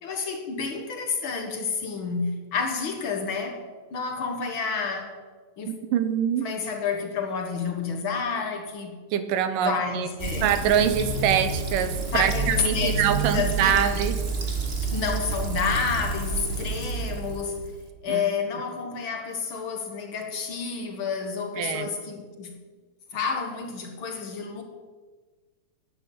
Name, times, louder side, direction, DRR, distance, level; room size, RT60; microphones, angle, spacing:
voice 1, 0.0-3.6 3.9-5.1 5.6-5.7 6.4-9.0 9.7-10.5 12.1-14.1 14.8-17.6 18.0-22.5 23.1-24.6, left 5 dB, 50° left, 4 dB, 1.8 m, -30 dB
voice 2, 5.7-6.5 9.1-10.1 10.4-14.2 18.1-18.3 21.6-21.9, right 9 dB, 85° right, 10 dB, 2.6 m, -24 dB
Fill (with liquid), 10.2-17.9, right 3 dB, 40° right, 0.8 m, -29 dB
11.0 x 9.8 x 8.4 m, 1.4 s
omnidirectional pair, 3.7 m